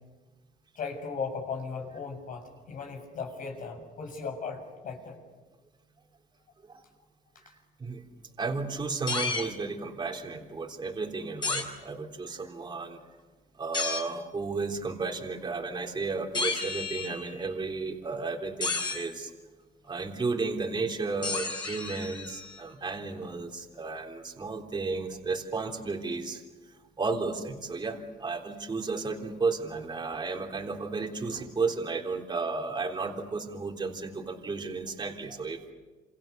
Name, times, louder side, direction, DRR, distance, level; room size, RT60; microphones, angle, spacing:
voice 1, 0.8-5.2, left 5 dB, 55° left, 4 dB, 7.2 m, -37 dB
voice 2, 8.4-13.0 13.6-19.3 19.9-26.4 27.0-35.7, right 4 dB, 25° right, 1 dB, 3.7 m, -33 dB
sound 1, 9.1-9.5 11.4-11.7 13.7-14.1 16.3-17.3 18.6-19.1 21.2-22.6, left 3 dB, 25° left, 7.4 m, -32 dB
28.5 x 27.5 x 7.0 m, 1.3 s
cardioid pair, 110°, 17 cm